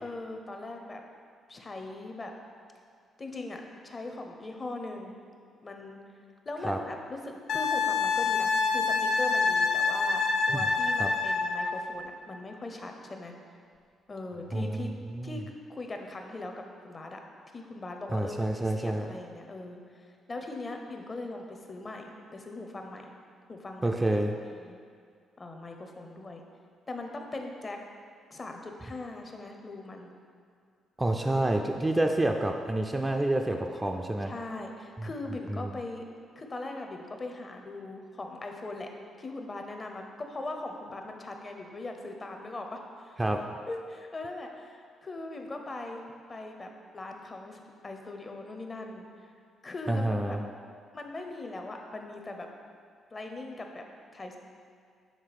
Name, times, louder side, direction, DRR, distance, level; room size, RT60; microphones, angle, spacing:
voice 1, 0.0-1.0 1.5-2.3 3.2-5.1 5.6-6.0 6.5-13.4 14.1-14.9 15.2-15.4 15.7-17.2 17.5-23.1 23.5-23.9 24.5-24.8 25.4-26.4 26.9-27.8 28.3-30.1 31.2-31.6 33.5-36.0 36.4-38.9 39.2-43.2 43.7-46.0 46.3-49.3 49.6-50.4 50.9-52.5 53.1-53.8 54.1-54.4, left 2 dB, 30° left, 3 dB, 0.7 m, -40 dB
Wind instrument woodwind instrument, 7.5-11.7 14.4-14.5, left 4 dB, 70° left, 0.5 m, -26 dB
voice 2, 14.5-15.4 18.1-19.1 23.8-24.3 31.0-34.3 35.6-35.7 43.2-43.4 49.9-50.4, right 1 dB, 15° right, 3 dB, 0.4 m, -28 dB
6.7 x 3.5 x 4.8 m, 2.2 s
cardioid pair, 90°, 0 cm